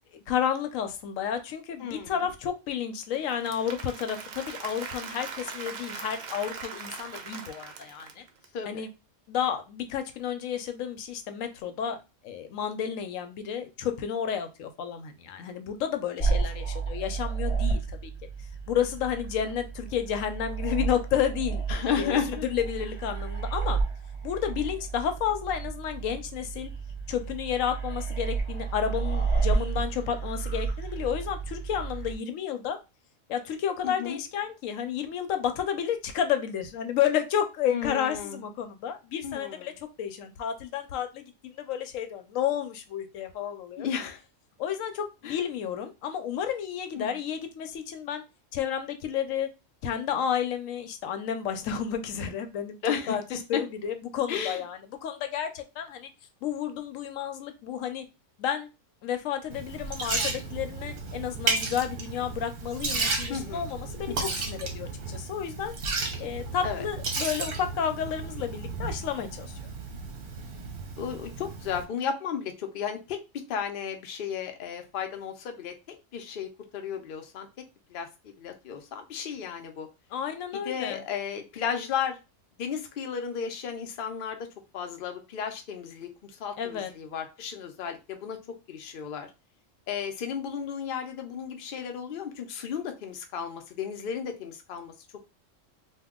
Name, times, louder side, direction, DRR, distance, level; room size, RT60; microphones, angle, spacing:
voice 1, 0.3-8.2 8.7-8.9 9.3-12.0 12.2-18.1 18.7-21.6 21.9-23.8 24.2-26.7 27.1-32.8 33.3-39.7 40.0-43.9 44.6-48.2 48.5-49.5 49.8-56.1 56.4-58.0 58.4-58.7 59.0-65.7 66.2-69.6 80.1-81.0 86.6-86.9, left 9 dB, 80° left, 7 dB, 1.0 m, -31 dB
voice 2, 1.8-2.2 8.5-8.8 21.7-22.5 33.8-34.2 37.7-38.4 39.2-39.7 43.8-44.2 45.2-45.4 46.9-47.2 52.8-53.6 54.3-54.6 63.3-63.7 64.1-64.4 66.6-66.8 71.0-75.8 76.1-77.5 77.9-79.9 80.5-82.2 82.6-84.5 84.7-89.3 89.9-94.9, left 7 dB, 55° left, 5 dB, 0.6 m, -34 dB
Applause / Crowd, 3.1-8.4, right 5 dB, 85° right, 0.4 m, -40 dB
sound 1, 16.2-32.1, right 4 dB, 25° left, 0.9 m, -31 dB
Liquid, 59.5-71.8, right 4 dB, 55° right, 0.8 m, -33 dB
2.8 x 2.2 x 3.5 m, 0.27 s
omnidirectional pair, 1.3 m